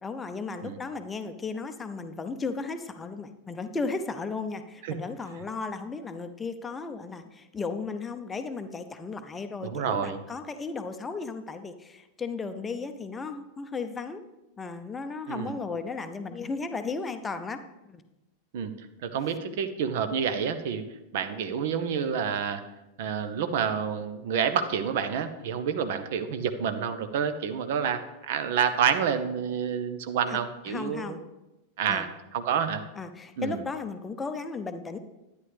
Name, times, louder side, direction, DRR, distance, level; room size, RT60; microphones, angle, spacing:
voice 1, 0.0-14.2 14.6-17.6 17.9-18.0 30.3-30.4 30.7-31.2 31.9-32.1 33.0-35.0, left 4 dB, 15° left, 8 dB, 0.6 m, -35 dB
voice 2, 9.6-10.2 15.3-15.5 18.5-18.7 19.0-20.8 21.1-22.6 23.0-31.2 31.8-32.8 33.4-33.6, right 7 dB, 55° right, 10 dB, 0.7 m, -28 dB
11.0 x 9.8 x 3.4 m, 0.99 s
figure-of-eight pair, 90°, 0 cm